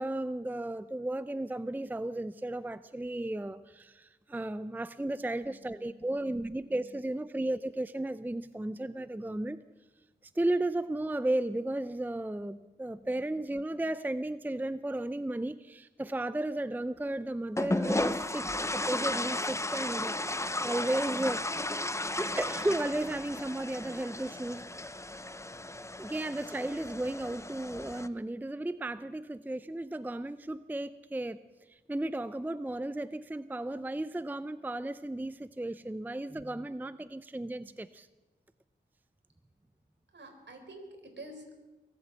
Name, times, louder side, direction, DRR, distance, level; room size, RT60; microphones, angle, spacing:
voice 1, 0.0-9.6 10.4-18.5 18.7-21.6 22.2-24.7 26.0-31.4 31.7-38.1, right 1 dB, 10° right, 0.5 m, -34 dB
voice 2, 4.9-7.0 12.6-12.7 12.9-13.1 21.8-22.4 37.5-37.6 40.1-41.5, right 2 dB, 65° right, 3.9 m, -52 dB
sound 1, 17.6-28.1, left 2 dB, 15° left, 0.8 m, -34 dB
23.0 x 8.2 x 7.6 m
cardioid pair, 45°, 20 cm